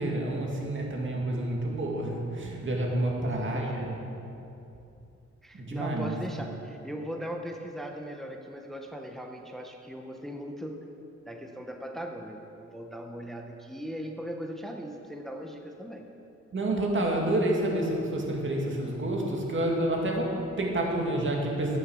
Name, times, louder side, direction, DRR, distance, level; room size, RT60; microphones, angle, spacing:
voice 1, 0.0-4.0 5.5-6.2 16.5-21.8, right 1 dB, 45° right, -1 dB, 2.1 m, -29 dB
voice 2, 2.9-3.7 5.4-10.8 11.3-16.1, equal, ahead, 3 dB, 0.8 m, -39 dB
13.0 x 9.8 x 6.3 m, 2.8 s
wide cardioid pair, 175°, 29 cm